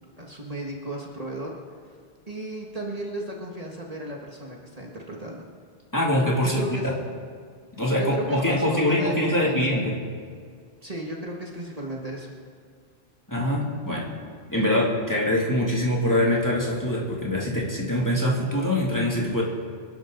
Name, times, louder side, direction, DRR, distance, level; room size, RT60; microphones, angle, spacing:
voice 1, 0.2-1.5 2.3-5.4 6.4-6.9 7.9-9.8 10.8-12.3, right 1 dB, 35° right, -2 dB, 1.7 m, -34 dB
voice 2, 5.9-6.6 7.8-10.0 13.3-14.1 14.5-19.4, left 1 dB, 15° left, -4 dB, 2.6 m, -24 dB
26.0 x 11.5 x 3.9 m, 2.1 s
omnidirectional pair, 1.1 m